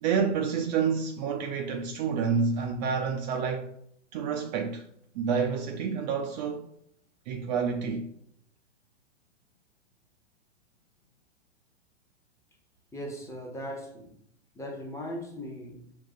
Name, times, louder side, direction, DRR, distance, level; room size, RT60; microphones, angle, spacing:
voice 1, 0.0-3.7 4.1-4.8 5.1-6.7 7.3-8.1, right 6 dB, 35° right, 0.5 m, -28 dB
voice 2, 12.9-14.2 14.5-15.9, equal, 10° left, 0.9 m, -38 dB
5.4 x 2.3 x 4.0 m
hypercardioid pair, 115°, 36 cm